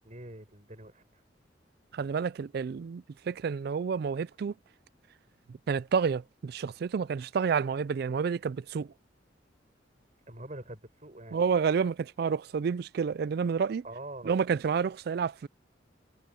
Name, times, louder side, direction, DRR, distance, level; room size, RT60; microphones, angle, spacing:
voice 1, 0.0-1.2 10.3-11.4 13.8-14.4, right 1 dB, 40° right, 5.9 m, -44 dB
voice 2, 1.9-4.5 5.5-8.9 11.3-13.8 14.2-15.5, right 6 dB, 55° right, 0.3 m, -29 dB
head